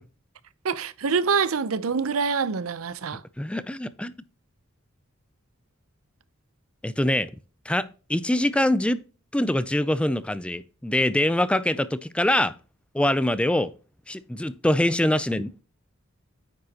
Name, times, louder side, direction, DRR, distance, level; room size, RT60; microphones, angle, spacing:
voice 1, 0.6-3.2 13.0-13.1, right 5 dB, 85° right, 0.6 m, -25 dB
voice 2, 3.4-4.1 6.8-7.3 7.7-9.0 9.3-12.5 12.9-13.7 14.1-15.6, left 1 dB, 5° left, 0.4 m, -24 dB
9.3 x 6.5 x 2.8 m
head